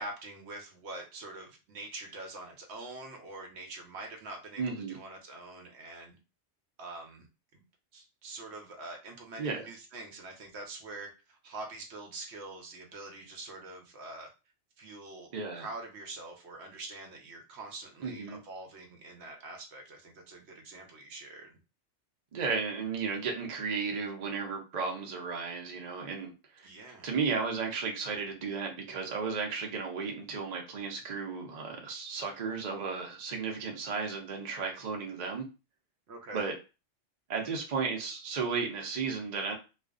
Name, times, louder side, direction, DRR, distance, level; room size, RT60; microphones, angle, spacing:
voice 1, 0.0-6.2 6.8-7.3 7.5-7.6 7.9-14.3 14.8-21.6 26.6-27.1 36.1-36.4, right 2 dB, 70° right, 3 dB, 0.9 m, -45 dB
voice 2, 4.6-5.0 9.4-9.6 15.3-15.7 18.0-18.4 22.3-26.7 27.0-35.5 36.3-36.5 37.3-39.6, right 5 dB, 50° right, 1 dB, 0.5 m, -34 dB
2.4 x 2.2 x 2.4 m, 0.30 s
omnidirectional pair, 1.3 m